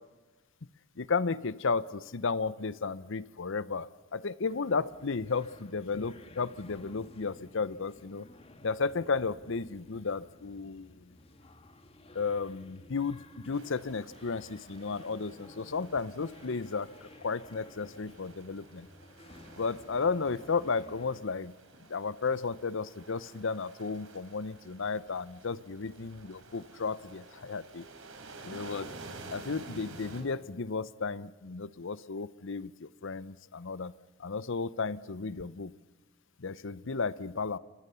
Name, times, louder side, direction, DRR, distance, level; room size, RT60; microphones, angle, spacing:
voice 1, 1.0-8.3 8.6-11.1 12.1-18.9 19.6-21.5 21.9-27.8 28.4-28.9 29.3-33.9 34.2-35.7 36.4-37.6, left 4 dB, 65° left, 17 dB, 0.7 m, -33 dB
sound 1, 4.5-21.2, left 1 dB, 30° left, 1.8 m, -55 dB
sound 2, 13.5-30.2, right 3 dB, 75° right, 4.3 m, -51 dB
29.0 x 24.5 x 6.9 m, 1.2 s
head